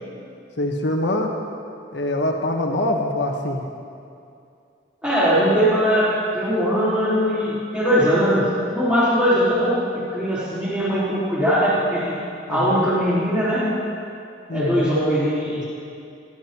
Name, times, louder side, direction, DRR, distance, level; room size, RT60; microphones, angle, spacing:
voice 1, 0.6-1.4 1.9-3.6 12.5-12.8 14.5-14.9, left 1 dB, 70° left, 2 dB, 1.2 m, -24 dB
voice 2, 5.0-12.1 12.5-13.7 14.5-15.6, equal, 5° right, -11 dB, 3.8 m, -20 dB
20.0 x 12.5 x 3.0 m, 2.5 s
head